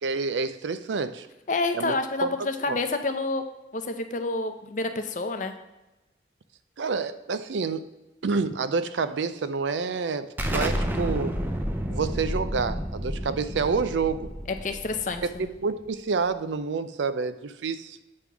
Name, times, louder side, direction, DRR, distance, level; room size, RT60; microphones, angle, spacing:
voice 1, 0.0-1.3 1.7-2.3 2.7-2.8 6.8-7.8 8.2-11.4 11.9-14.3 15.2-18.0, right 4 dB, 85° right, 13 dB, 0.5 m, -28 dB
voice 2, 1.5-3.5 3.7-5.5 14.5-15.4, left 3 dB, 45° left, 7 dB, 0.6 m, -28 dB
Explosion, 10.4-15.8, equal, 10° right, 0.5 m, -30 dB
8.5 x 3.5 x 6.0 m, 0.98 s
head